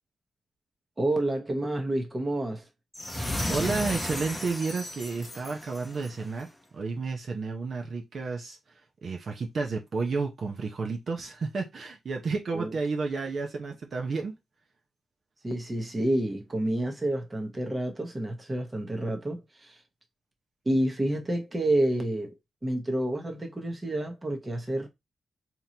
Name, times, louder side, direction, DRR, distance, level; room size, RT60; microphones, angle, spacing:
voice 1, 1.0-2.6 12.5-12.7 15.4-19.8 20.6-22.3 22.6-24.9, right 1 dB, 20° right, 1.0 m, -29 dB
sound 1, 2.9-6.3, left 1 dB, 10° left, 0.8 m, -33 dB
voice 2, 3.1-14.3, right 4 dB, 55° right, 0.7 m, -32 dB
3.7 x 2.9 x 2.8 m
cardioid pair, 110°, 0 cm